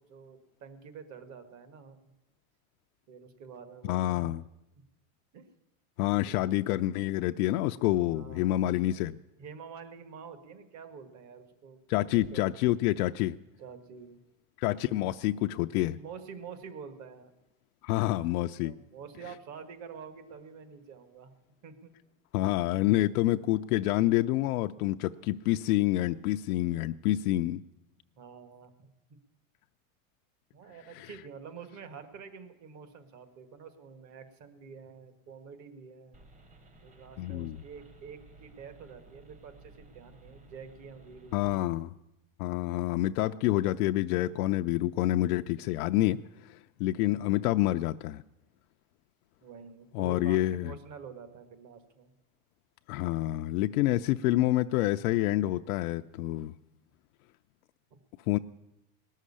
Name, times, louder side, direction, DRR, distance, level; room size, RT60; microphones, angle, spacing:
voice 1, 0.0-2.0 3.1-4.4 5.3-5.4 6.2-6.3 8.1-8.7 9.4-12.5 13.6-14.2 14.8-15.0 15.9-17.3 18.6-21.3 21.6-21.9 22.7-22.8 28.2-28.7 30.5-36.2 36.8-41.6 47.2-47.4 49.4-52.1 57.9-58.0, right 6 dB, 40° right, 9 dB, 1.7 m, -48 dB
voice 2, 3.8-4.4 6.0-9.1 11.9-13.4 14.6-16.0 17.8-18.7 22.3-27.6 30.9-31.1 37.2-37.6 41.3-41.9 42.4-48.2 49.9-50.7 52.9-56.5 58.3-58.4, left 15 dB, 85° left, 7 dB, 0.6 m, -28 dB
sound 1, 36.1-41.6, right 2 dB, 15° right, 1.1 m, -55 dB
18.5 x 6.5 x 9.8 m, 0.90 s
supercardioid pair, 140°, 43 cm